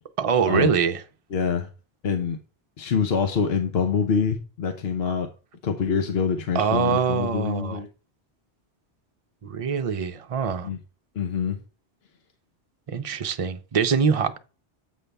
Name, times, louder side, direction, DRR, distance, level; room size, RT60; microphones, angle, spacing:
voice 1, 0.2-1.0 6.5-7.8 9.4-10.7 12.9-14.4, right 6 dB, 35° right, 0.7 m, -24 dB
voice 2, 1.3-1.7 2.0-2.4 2.8-5.3 5.6-7.9 10.6-10.8 11.2-11.6, left 6 dB, 70° left, 1.1 m, -25 dB
8.3 x 5.4 x 3.4 m
omnidirectional pair, 1.1 m